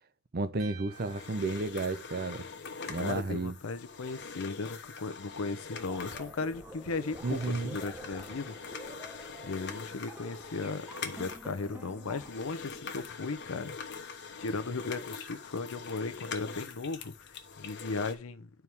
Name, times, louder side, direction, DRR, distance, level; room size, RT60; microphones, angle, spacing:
voice 1, 0.3-2.4 2.9-3.6 7.2-7.8, right 3 dB, 45° right, 0.7 m, -32 dB
sound 1, 0.6-2.9, right 8 dB, 75° right, 1.0 m, -54 dB
sound 2, 0.9-18.1, left 5 dB, 55° left, 1.0 m, -44 dB
voice 2, 3.0-8.8 9.4-13.7 14.0-14.1 14.4-18.5, left 3 dB, 75° left, 0.7 m, -36 dB
sound 3, 5.7-12.3, equal, 10° right, 1.1 m, -48 dB
11.0 x 4.6 x 3.4 m
head